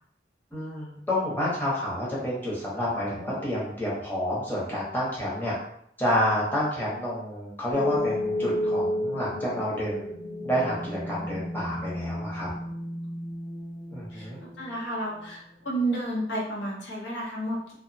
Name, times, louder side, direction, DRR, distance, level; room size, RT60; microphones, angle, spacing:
voice 1, 0.5-5.5 6.0-10.1 10.4-12.5 13.9-14.4, left 1 dB, 10° left, -7 dB, 0.8 m, -29 dB
sound 1, 7.7-14.6, left 1 dB, 35° right, 0.6 m, -32 dB
voice 2, 14.1-17.7, right 1 dB, 80° left, -3 dB, 0.8 m, -31 dB
2.6 x 2.1 x 2.6 m, 0.70 s
head